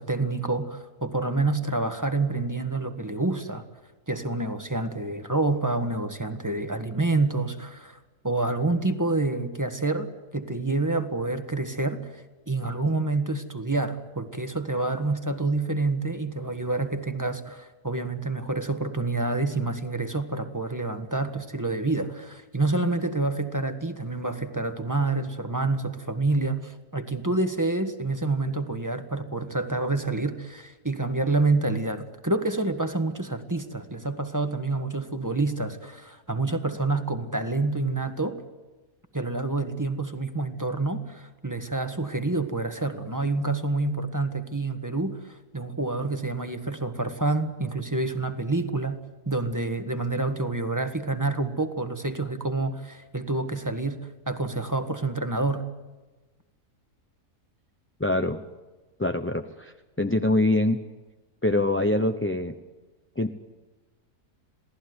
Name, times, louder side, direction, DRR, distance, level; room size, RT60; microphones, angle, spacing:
voice 1, 0.0-3.7 4.1-8.0 8.2-38.4 39.1-55.7, right 2 dB, 10° right, 7 dB, 1.5 m, -28 dB
voice 2, 58.0-58.4 59.0-60.8 61.4-62.6 63.2-63.3, left 2 dB, 10° left, 8 dB, 0.7 m, -24 dB
27.0 x 18.0 x 9.6 m, 1.2 s
omnidirectional pair, 1.6 m